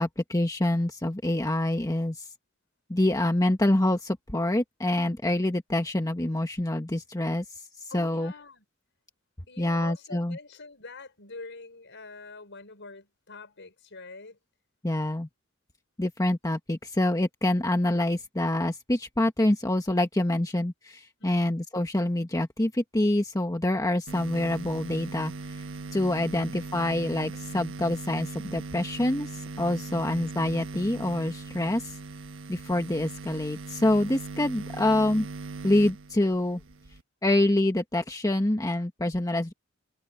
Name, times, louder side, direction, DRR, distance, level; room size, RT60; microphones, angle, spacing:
voice 1, 0.0-2.3 2.9-7.4 7.9-8.3 9.6-10.4 14.8-15.3 16.0-25.3 25.9-31.9 32.5-35.3 35.6-36.6 37.2-39.5, left 1 dB, 15° left, 1.3 m, -26 dB
voice 2, 7.9-8.6 9.5-14.4 21.2-21.5 29.9-30.0, left 3 dB, 60° left, 5.9 m, -45 dB
sound 1, 24.1-37.0, right 3 dB, 65° right, 1.4 m, -39 dB
head